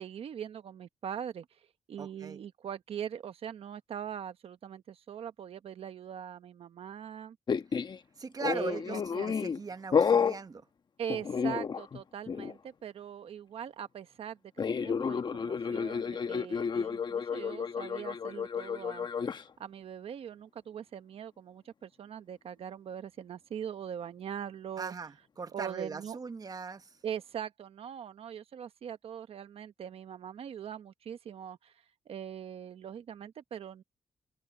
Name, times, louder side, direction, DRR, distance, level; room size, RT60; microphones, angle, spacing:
voice 1, 0.0-7.4 8.5-9.3 11.0-14.4 14.7-19.1 19.6-24.9 25.5-26.2 27.0-33.8, right 8 dB, 70° right, 1.0 m, -41 dB
voice 2, 2.0-2.4 8.2-9.0 9.3-10.6 24.8-25.1 25.4-26.9, right 5 dB, 40° right, 1.2 m, -39 dB
sound 1, 7.5-8.0 8.4-9.6 9.9-10.4 11.1-12.0 12.3-12.5 14.6-19.4, left 6 dB, 45° left, 1.1 m, -31 dB
open air
cardioid pair, 90°, 10 cm